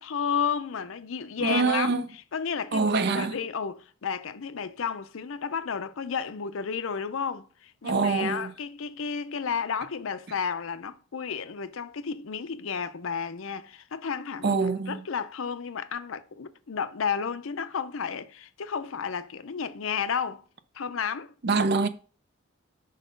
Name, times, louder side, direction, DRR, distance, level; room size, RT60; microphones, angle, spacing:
voice 1, 0.0-2.0 2.3-20.4 20.7-21.3, left 6 dB, 70° left, 0.6 m, -32 dB
voice 2, 1.4-2.1 2.7-3.4 7.8-8.5 14.4-15.0 21.4-21.9, right 4 dB, 50° right, 0.5 m, -25 dB
5.4 x 4.0 x 5.1 m
head